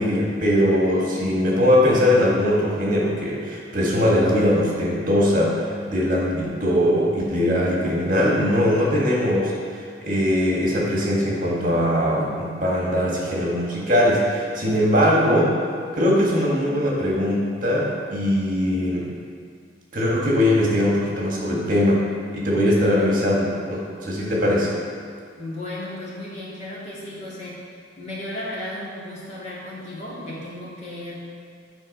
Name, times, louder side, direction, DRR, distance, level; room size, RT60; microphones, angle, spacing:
voice 1, 0.0-15.6 15.9-19.1 19.9-22.0 22.3-24.7, left 1 dB, 50° right, -4 dB, 1.6 m, -21 dB
voice 2, 25.4-31.1, left 1 dB, 40° left, -7 dB, 2.1 m, -34 dB
9.9 x 4.2 x 5.3 m, 2.2 s
head